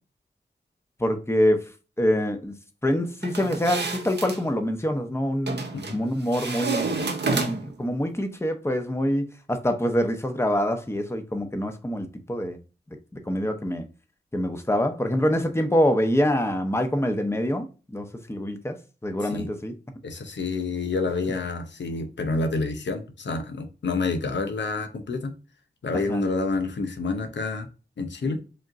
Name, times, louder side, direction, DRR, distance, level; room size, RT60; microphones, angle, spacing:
voice 1, 1.0-1.6 2.0-2.5 2.8-5.6 5.9-12.6 13.1-13.8 14.3-18.8 19.0-19.7 26.1-26.2, equal, 15° left, 0.8 m, -25 dB
sound 1, 3.2-4.4 5.5-6.0 6.3-7.8, right 4 dB, 70° right, 0.7 m, -29 dB
voice 2, 20.0-25.3 25.8-27.7 28.0-28.4, left 3 dB, 85° left, 0.7 m, -28 dB
5.0 x 3.0 x 2.5 m
wide cardioid pair, 50°, 18 cm